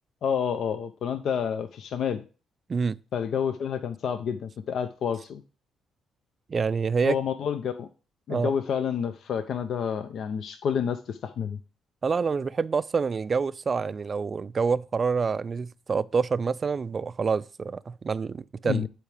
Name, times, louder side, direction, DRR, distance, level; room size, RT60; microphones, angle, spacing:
voice 1, 0.2-2.2 3.1-5.4 7.0-7.9 8.3-11.6 18.6-18.9, left 7 dB, 65° left, 0.6 m, -29 dB
voice 2, 6.5-7.2 8.3-8.5 12.0-18.9, right 5 dB, 40° right, 0.3 m, -27 dB
10.5 x 4.6 x 3.4 m
cardioid pair, 90°, 0 cm